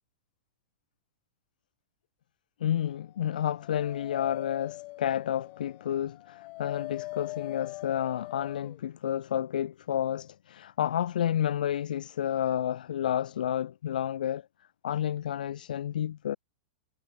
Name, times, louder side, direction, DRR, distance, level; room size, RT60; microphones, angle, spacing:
voice 1, 2.6-14.4 14.8-16.4, left 10 dB, 80° left, 0.7 m, -30 dB
Dog, 3.2-8.8, left 22 dB, 45° left, 1.1 m, -42 dB
hypercardioid pair, 120°, 4 cm